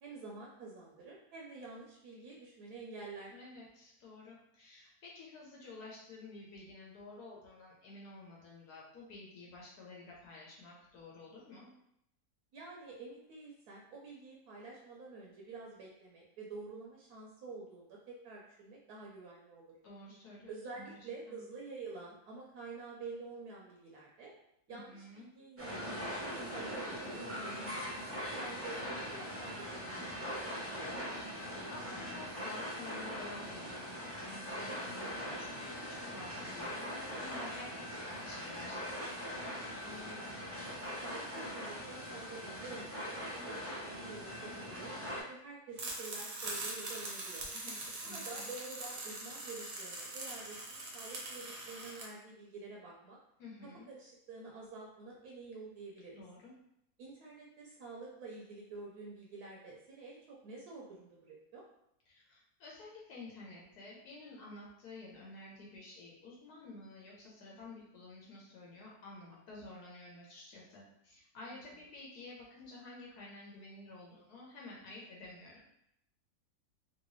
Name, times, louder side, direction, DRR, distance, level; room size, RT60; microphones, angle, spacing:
voice 1, 0.0-3.3 12.5-19.8 20.5-24.3 24.7-27.7 28.4-31.1 39.8-40.4 41.0-43.1 43.4-47.5 48.0-53.2 53.9-56.2 57.0-61.6 71.5-71.6, right 3 dB, 75° right, -2 dB, 1.1 m, -49 dB
voice 2, 3.3-11.7 19.8-21.0 21.3-21.4 24.7-25.3 28.9-29.0 31.7-39.2 47.5-48.5 53.4-53.9 56.1-56.5 62.1-75.6, left 2 dB, 75° left, -4 dB, 1.3 m, -51 dB
sound 1, 25.6-45.2, equal, 15° right, 0.5 m, -41 dB
sound 2, 45.8-52.0, right 2 dB, 55° right, 0.9 m, -42 dB
3.1 x 2.8 x 3.0 m, 0.78 s
omnidirectional pair, 1.7 m